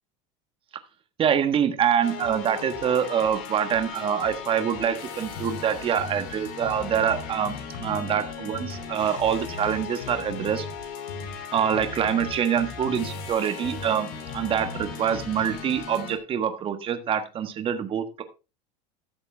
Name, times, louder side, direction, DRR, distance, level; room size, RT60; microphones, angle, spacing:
voice 1, 1.2-10.7 11.5-18.2, right 8 dB, 35° right, 9 dB, 1.4 m, -25 dB
sound 1, 2.0-16.2, left 7 dB, 65° left, 3.0 m, -38 dB
sound 2, 5.3-5.6 6.0-8.2 8.5-10.7 11.1-13.3 13.6-15.6, left 3 dB, 80° left, 5.0 m, -39 dB
13.0 x 7.0 x 3.4 m, 0.30 s
supercardioid pair, 120°, 16 cm